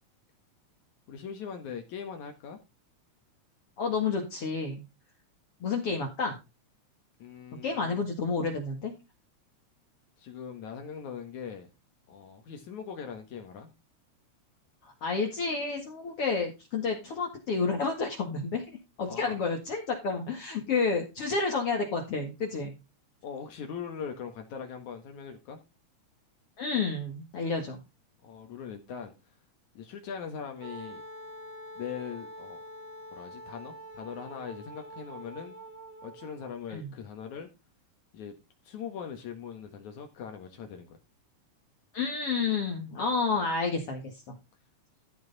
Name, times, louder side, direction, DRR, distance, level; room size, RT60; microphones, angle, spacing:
voice 1, 1.1-2.6 7.2-8.0 10.2-11.7 12.1-13.7 19.1-19.4 23.2-25.6 28.2-29.1 29.7-31.0 31.8-32.6 33.1-35.6 36.0-37.5 38.1-38.4 38.6-41.0, left 7 dB, 70° left, 5 dB, 2.9 m, -41 dB
voice 2, 3.8-4.8 5.6-6.4 7.6-8.9 14.8-18.6 19.0-22.8 26.6-27.8 36.7-36.9 41.9-44.3, left 4 dB, 50° left, 1 dB, 2.7 m, -30 dB
Wind instrument woodwind instrument, 30.6-36.6, equal, 70° right, 3.3 m, -45 dB
13.5 x 6.3 x 4.1 m, 0.26 s
omnidirectional pair, 3.6 m